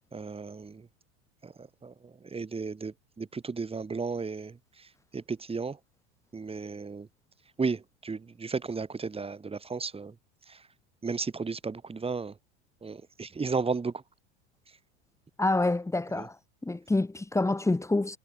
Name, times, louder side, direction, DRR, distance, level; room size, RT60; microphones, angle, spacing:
voice 1, 0.1-0.9 1.4-4.9 5.1-5.8 6.3-7.1 7.6-10.1 10.5-10.6 11.0-12.3 12.8-14.0 16.1-16.3, right 4 dB, 15° right, 4.8 m, -34 dB
voice 2, 15.4-16.4 16.6-18.2, left 2 dB, 10° left, 4.1 m, -27 dB
supercardioid pair, 110°, 35 cm